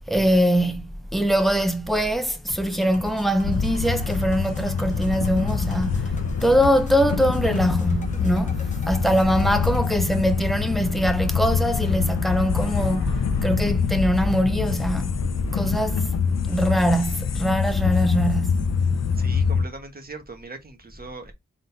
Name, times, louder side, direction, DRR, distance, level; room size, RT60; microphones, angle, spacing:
voice 1, 0.1-6.1 6.4-15.1 15.5-16.0 16.5-18.6, equal, ahead, 0.8 m, -23 dB
sound 1, 2.5-9.9, equal, 25° left, 1.0 m, -41 dB
sound 2, 2.6-13.6, equal, 80° right, 1.9 m, -43 dB
sound 3, 3.4-19.7, left 5 dB, 60° left, 0.7 m, -25 dB
voice 2, 19.1-21.3, right 3 dB, 30° right, 1.3 m, -39 dB
3.9 x 3.8 x 2.7 m
cardioid pair, 75°, 30 cm